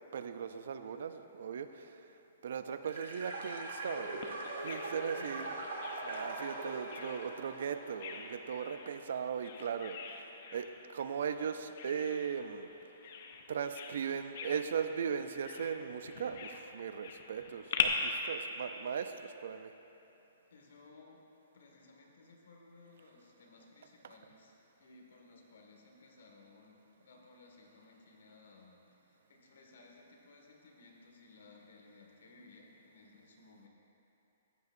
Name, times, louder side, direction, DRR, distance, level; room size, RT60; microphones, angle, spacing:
voice 1, 0.1-2.1 2.4-4.2 4.6-5.5 6.0-12.7 13.5-19.7 24.0-24.2, right 7 dB, 55° right, 10 dB, 0.4 m, -38 dB
sound 1, 2.8-8.6, right 2 dB, 85° right, 1.6 m, -42 dB
Bird vocalization bird call bird song, 4.2-17.8, left 9 dB, 40° left, 0.6 m, -43 dB
voice 2, 5.1-5.5 18.4-18.5 20.5-21.3 21.5-33.7, left 3 dB, 70° left, 0 dB, 1.8 m, -59 dB
14.5 x 9.5 x 2.6 m, 2.9 s
hypercardioid pair, 175°, 0 cm